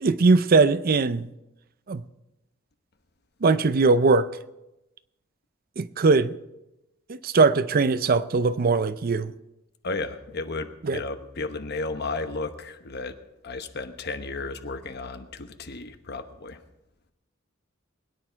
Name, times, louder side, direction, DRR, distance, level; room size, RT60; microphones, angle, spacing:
voice 1, 0.0-1.3 1.9-2.0 3.4-4.3 5.8-6.3 7.1-9.3 10.8-11.0, right 4 dB, 45° right, 0.5 m, -20 dB
voice 2, 9.8-13.2 13.4-16.6, left 3 dB, 55° left, 1.1 m, -33 dB
21.5 x 9.8 x 4.6 m
head